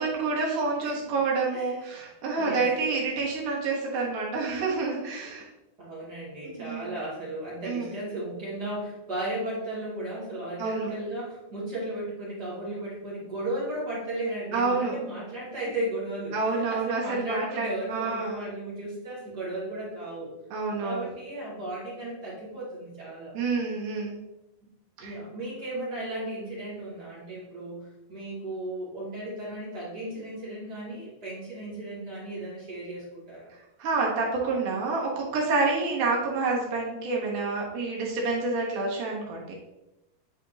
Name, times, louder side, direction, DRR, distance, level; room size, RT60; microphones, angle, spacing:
voice 1, 0.0-5.5 6.4-7.0 7.6-8.0 10.6-10.9 14.5-15.0 16.3-18.4 20.5-21.1 23.3-24.2 25.0-25.2 33.8-39.5, right 3 dB, 70° right, -3 dB, 2.7 m, -28 dB
voice 2, 1.5-2.0 2.4-3.0 5.8-20.3 20.8-23.3 25.0-33.5, right 1 dB, 30° right, -8 dB, 2.7 m, -35 dB
9.1 x 4.3 x 2.8 m, 0.96 s
omnidirectional pair, 3.9 m